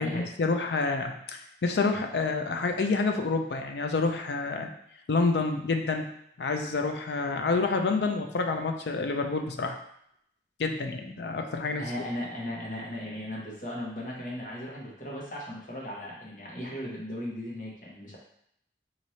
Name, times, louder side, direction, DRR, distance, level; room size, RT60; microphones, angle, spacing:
voice 1, 0.0-4.7 5.1-6.1 6.4-9.8 10.6-11.8, left 3 dB, 75° left, 5 dB, 0.5 m, -28 dB
voice 2, 11.8-18.2, left 1 dB, 45° left, -4 dB, 1.1 m, -37 dB
3.2 x 2.6 x 4.1 m, 0.72 s
head